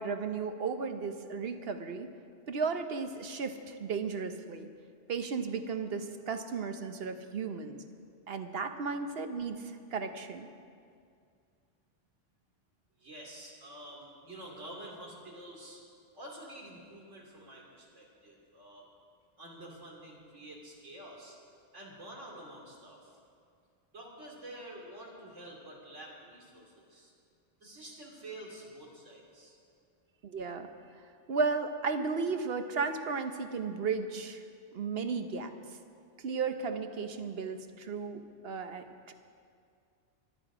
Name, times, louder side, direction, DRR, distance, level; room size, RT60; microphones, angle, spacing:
voice 1, 0.0-2.1 2.5-4.7 5.1-7.8 8.3-10.5 30.2-30.7 31.3-34.4 34.7-35.8 36.2-39.1, right 5 dB, 60° right, 7 dB, 1.0 m, -34 dB
voice 2, 13.0-15.8 16.1-18.8 19.4-21.4 21.7-23.2 23.9-27.1 27.6-29.6, right 1 dB, 85° right, -2 dB, 3.2 m, -48 dB
23.5 x 9.0 x 4.9 m, 2.3 s
omnidirectional pair, 1.2 m